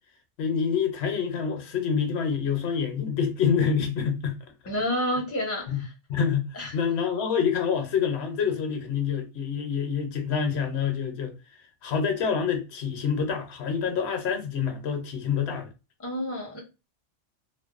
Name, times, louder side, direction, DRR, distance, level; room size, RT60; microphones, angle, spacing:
voice 1, 0.4-4.4 5.7-5.8 6.1-15.7, left 7 dB, 70° left, 0.8 m, -27 dB
voice 2, 4.7-5.9 6.5-6.8 16.0-16.6, equal, 20° left, 0.5 m, -29 dB
2.5 x 2.1 x 2.4 m
omnidirectional pair, 1.2 m